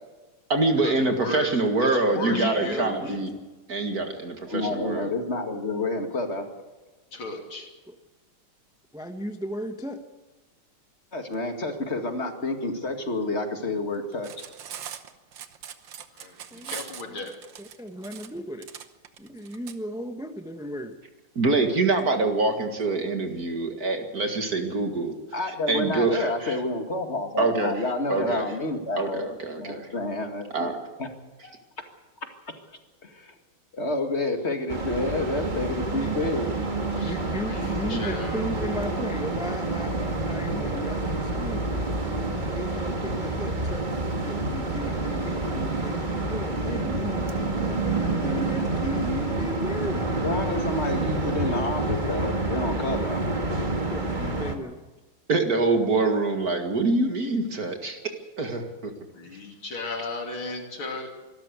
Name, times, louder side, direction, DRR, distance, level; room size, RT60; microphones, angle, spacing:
voice 1, 0.5-3.3 3.7-5.1 21.4-25.1 25.5-26.6 27.4-28.5 29.0-29.9 30.5-30.8 55.3-58.0 58.4-58.9, right 3 dB, 45° right, 4 dB, 2.3 m, -25 dB
voice 2, 1.2-1.5 1.8-3.0 7.1-7.7 16.2-16.3 16.7-17.3 36.9-37.1 37.5-38.4 59.1-61.2, left 3 dB, 70° left, 2 dB, 3.7 m, -35 dB
voice 3, 2.1-3.4 7.9-8.0 8.9-10.0 16.5-17.3 17.6-18.7 19.2-21.0 36.0-36.1 36.6-36.7 37.0-50.2 52.7-53.4 53.9-54.8, equal, 5° right, 5 dB, 0.5 m, -36 dB
voice 4, 4.5-6.5 11.1-14.3 25.3-29.3 29.6-30.7 31.0-31.1 31.4-31.5 33.0-33.3 33.7-36.6 50.2-53.2, left 2 dB, 30° left, 5 dB, 2.2 m, -29 dB
Cutlery silverware, 14.1-19.7, right 9 dB, 65° right, 1.7 m, -41 dB
sound 1, 34.7-54.5, right 2 dB, 25° right, 1.8 m, -28 dB
24.5 x 13.5 x 8.2 m, 1.2 s
omnidirectional pair, 2.3 m